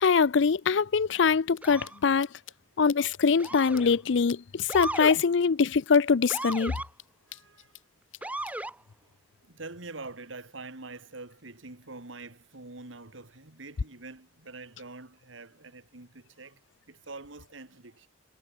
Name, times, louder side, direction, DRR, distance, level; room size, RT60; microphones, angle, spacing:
voice 1, 0.0-2.3 2.8-6.7, left 5 dB, 65° left, 0.5 m, -23 dB
sound 1, 1.5-1.6 1.8-1.9 2.2-2.5 2.9-3.5 3.8-3.9 4.3-4.4 4.8-4.9 5.2-7.8 8.1-8.5, left 12 dB, 90° left, 5.5 m, -46 dB
Motor vehicle (road) / Siren, 1.6-2.0 3.4-4.0 4.7-5.2 6.3-6.9 8.2-8.8, right 1 dB, 5° right, 1.3 m, -35 dB
voice 2, 7.3-7.7 9.0-9.1 9.4-16.6 16.9-18.1, right 3 dB, 80° right, 2.3 m, -45 dB
head